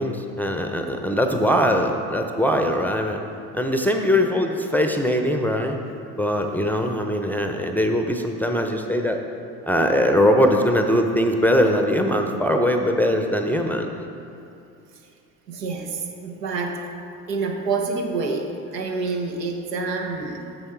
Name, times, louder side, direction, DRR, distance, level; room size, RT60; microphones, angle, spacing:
voice 1, 0.0-3.2 3.5-5.8 6.2-9.2 9.6-13.9, equal, 5° left, 3 dB, 0.5 m, -21 dB
voice 2, 15.5-16.9 17.3-20.5, right 4 dB, 85° right, 2 dB, 1.0 m, -27 dB
7.1 x 6.7 x 4.6 m, 2.7 s
hypercardioid pair, 65°, 48 cm